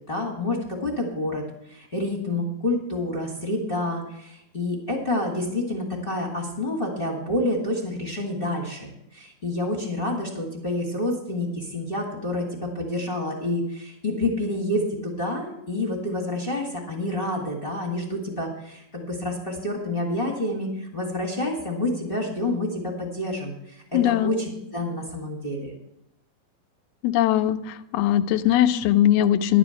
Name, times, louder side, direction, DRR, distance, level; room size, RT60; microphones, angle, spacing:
voice 1, 0.1-25.7, left 1 dB, 25° left, 1 dB, 1.2 m, -28 dB
voice 2, 23.9-24.4 27.0-27.6 27.9-29.6, left 12 dB, 80° left, 12 dB, 2.5 m, -20 dB
11.5 x 7.0 x 7.7 m, 0.84 s
omnidirectional pair, 4.5 m